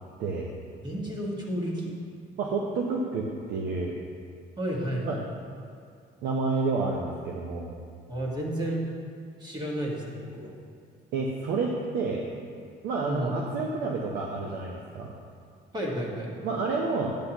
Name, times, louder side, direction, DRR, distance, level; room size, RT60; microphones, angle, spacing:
voice 1, 0.2-0.5 2.4-3.9 5.0-5.2 6.2-7.7 11.1-12.2 12.8-15.1 16.4-17.2, right 3 dB, 80° right, -1 dB, 0.8 m, -29 dB
voice 2, 0.8-1.9 4.6-5.2 8.1-8.8 9.4-10.5 13.0-13.4 15.7-16.3, equal, 25° right, -3 dB, 1.5 m, -31 dB
8.6 x 8.0 x 2.9 m, 2.2 s
cardioid pair, 110°, 17 cm